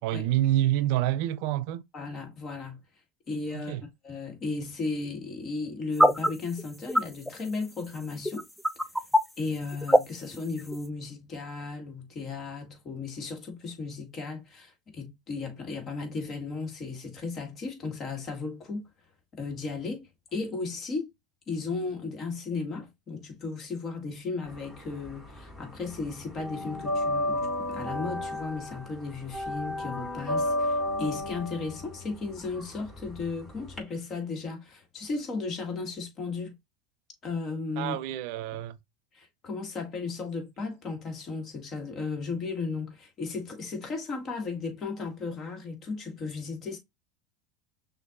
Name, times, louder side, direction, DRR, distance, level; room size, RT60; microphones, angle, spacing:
voice 1, 0.0-1.8 3.5-3.8 37.8-38.8, right 13 dB, 65° right, 0.4 m, -27 dB
voice 2, 1.9-2.8 3.3-3.8 4.0-8.5 9.4-18.8 19.3-21.1 21.5-36.6 37.2-38.0 39.1-46.8, left 4 dB, 40° left, 1.9 m, -35 dB
sound 1, 6.0-6.3 6.6-6.7 6.9-7.0 7.3-7.4 8.3-9.2 9.6-10.0 10.3-10.8, equal, ahead, 0.4 m, -20 dB
sound 2, 24.5-25.6 25.9-33.8, left 1 dB, 20° left, 3.0 m, -32 dB
6.2 x 2.6 x 2.4 m
hypercardioid pair, 85°, 0 cm